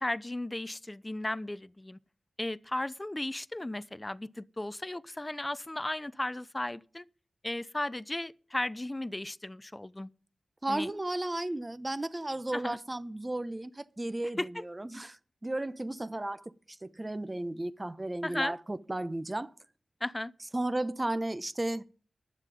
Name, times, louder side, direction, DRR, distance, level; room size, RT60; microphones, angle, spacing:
voice 1, 0.0-2.0 2.4-7.0 7.4-10.1 10.7-10.9 12.5-12.8 14.4-14.6 18.2-18.5 20.0-20.3, left 1 dB, 25° left, 0.6 m, -35 dB
voice 2, 10.6-19.5 20.5-21.8, right 1 dB, 25° right, 0.9 m, -34 dB
10.5 x 7.3 x 9.2 m
cardioid pair, 45°, 0 cm